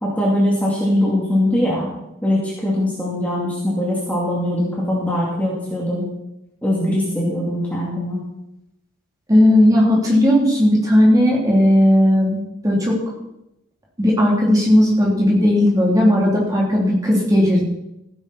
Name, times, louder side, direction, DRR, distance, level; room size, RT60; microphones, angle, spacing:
voice 1, 0.0-1.9 2.2-6.1 6.6-8.2, left 1 dB, 5° left, -5 dB, 2.5 m, -21 dB
voice 2, 9.3-13.0 14.0-17.6, left 1 dB, 15° right, -4 dB, 3.1 m, -15 dB
15.5 x 9.2 x 4.3 m, 0.87 s
head